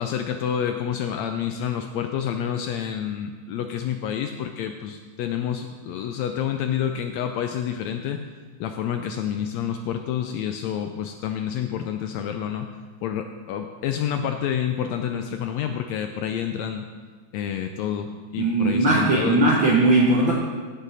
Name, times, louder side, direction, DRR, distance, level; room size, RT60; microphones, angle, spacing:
voice 1, 0.0-8.2 8.6-12.7 13.0-16.9 17.3-19.5, left 9 dB, 80° left, 6 dB, 1.6 m, -28 dB
voice 2, 18.4-20.3, right 2 dB, 70° right, -3 dB, 1.2 m, -19 dB
15.5 x 6.2 x 4.0 m, 1.5 s
omnidirectional pair, 3.5 m